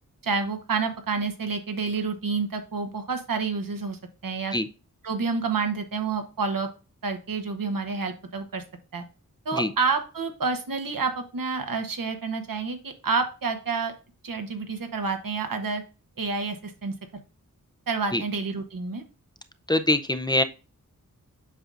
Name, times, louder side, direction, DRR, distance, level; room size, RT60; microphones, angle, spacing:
voice 1, 0.2-4.6 5.0-6.7 7.0-8.6 8.9-9.0 9.4-13.9 14.2-15.8 16.2-17.2 17.9-19.0, right 4 dB, 80° right, 6 dB, 1.1 m, -29 dB
voice 2, 19.7-20.4, left 1 dB, 15° left, 9 dB, 0.5 m, -23 dB
7.9 x 5.4 x 2.5 m, 0.33 s
wide cardioid pair, 85°, 33 cm